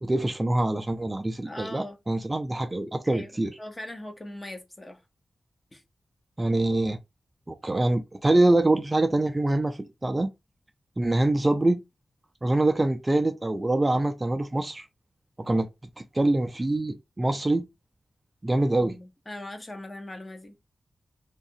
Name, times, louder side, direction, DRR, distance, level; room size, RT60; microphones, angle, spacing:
voice 1, 0.0-3.5 6.4-7.0 7.5-10.3 11.0-11.8 12.4-14.9 15.4-15.7 16.0-17.7 18.4-18.9, right 2 dB, 20° right, 0.3 m, -24 dB
voice 2, 1.4-2.0 3.0-5.0 5.7-5.8 18.8-20.6, left 1 dB, 25° left, 0.7 m, -40 dB
2.9 x 2.4 x 2.7 m
wide cardioid pair, 100°, 0 cm